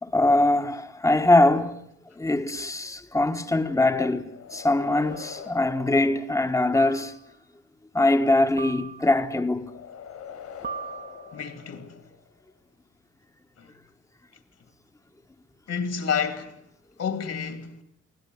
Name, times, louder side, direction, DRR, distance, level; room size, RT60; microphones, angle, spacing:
voice 1, 0.0-1.8 2.1-7.2 7.9-9.7, left 2 dB, 10° left, 1.4 m, -22 dB
sound 1, 3.5-3.6 5.1-5.5 6.7-7.3 8.6-9.3 10.6-11.6, right 6 dB, 35° right, 1.2 m, -40 dB
sound 2, 4.2-7.0 9.6-12.3, left 7 dB, 70° left, 5.0 m, -43 dB
voice 2, 11.3-12.0 13.6-13.7 15.7-16.6 17.0-17.8, left 6 dB, 55° left, 2.9 m, -30 dB
24.0 x 17.0 x 9.5 m
cardioid pair, 90°, 30 cm